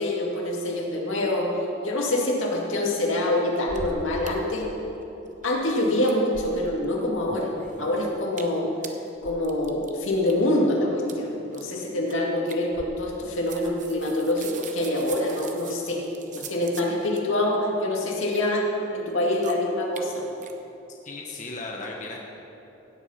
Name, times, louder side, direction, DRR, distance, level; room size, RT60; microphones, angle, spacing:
voice 1, 0.0-1.5 1.8-4.7 5.4-7.5 7.8-8.7 9.2-16.0 16.3-20.2, left 1 dB, 85° left, -1 dB, 2.2 m, -25 dB
sound 1, 3.5-4.3 4.6-4.7 4.9-5.7 6.0-6.8 7.2-7.9 8.3-8.6 8.8-10.3 11.0-11.1 11.5-11.7 12.1-12.2 12.5-13.2 13.5-17.2 18.0-18.4 19.0-19.1 19.4-19.5 20.0-20.1 20.4-20.5, right 4 dB, 40° right, 0.9 m, -41 dB
voice 2, 21.0-22.2, left 3 dB, 40° left, -1 dB, 1.0 m, -35 dB
16.0 x 8.1 x 5.7 m, 3.0 s
head